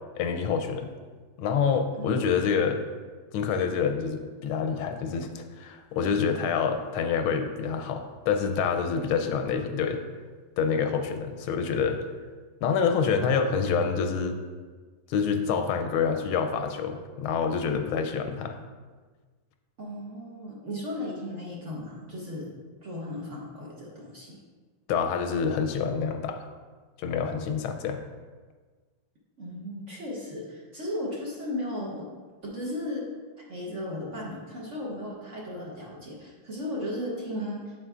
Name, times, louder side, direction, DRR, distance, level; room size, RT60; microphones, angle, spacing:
voice 1, 0.1-0.9 1.4-2.8 3.3-10.0 10.6-12.0 12.6-14.4 15.1-18.6 24.9-26.5 27.0-28.0, left 6 dB, 85° left, 6 dB, 1.4 m, -27 dB
voice 2, 19.8-22.5 22.8-24.4 29.4-32.1 32.4-33.0 33.5-37.7, left 1 dB, 45° right, -4 dB, 1.1 m, -35 dB
7.8 x 7.8 x 2.4 m, 1.4 s
omnidirectional pair, 2.3 m